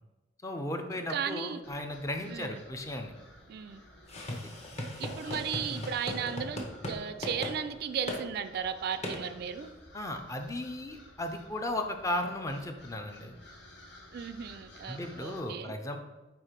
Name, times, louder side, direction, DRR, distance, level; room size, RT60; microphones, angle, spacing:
voice 1, 0.4-3.1 4.3-4.5 5.7-5.8 9.9-13.4 14.9-16.0, left 1 dB, 15° left, 5 dB, 0.5 m, -36 dB
voice 2, 1.1-1.6 2.3-2.6 3.5-3.8 5.0-9.7 14.1-15.7, right 7 dB, 55° right, 11 dB, 0.3 m, -35 dB
sound 1, 1.6-15.4, left 1 dB, 65° left, 1.2 m, -55 dB
sound 2, 4.1-7.0 7.2-7.6 8.1-8.2 9.0-9.2, left 1 dB, 35° left, 0.9 m, -37 dB
4.5 x 4.2 x 5.0 m, 1.1 s
head